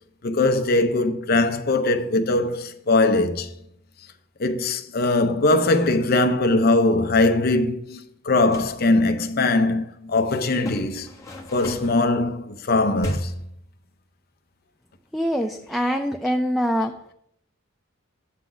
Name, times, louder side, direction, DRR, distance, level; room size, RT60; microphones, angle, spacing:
voice 1, 0.2-3.5 4.4-11.1 11.5-13.4, left 2 dB, 50° left, 0.7 m, -21 dB
sound 1, 8.3-8.8 10.6-12.0 13.0-13.5, equal, 15° left, 0.9 m, -34 dB
voice 2, 15.1-17.0, equal, ahead, 0.3 m, -24 dB
8.3 x 3.8 x 5.9 m
head